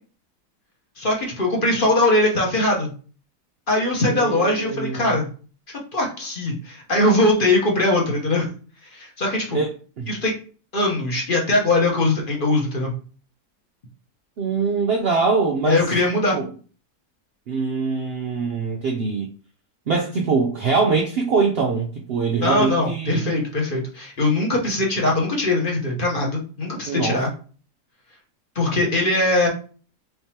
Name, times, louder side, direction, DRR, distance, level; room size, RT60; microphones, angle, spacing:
voice 1, 1.0-2.9 3.7-5.3 5.9-8.5 8.8-9.6 10.1-10.3 10.7-12.9 15.6-16.4 22.4-27.3 28.5-29.5, left 2 dB, 40° left, -1 dB, 1.0 m, -21 dB
voice 2, 4.1-5.1 9.5-10.1 14.4-15.8 16.3-16.4 17.5-19.3 19.9-23.3 26.8-27.2, right 4 dB, 85° right, 2 dB, 0.5 m, -23 dB
3.8 x 3.4 x 2.8 m, 0.39 s
omnidirectional pair, 1.7 m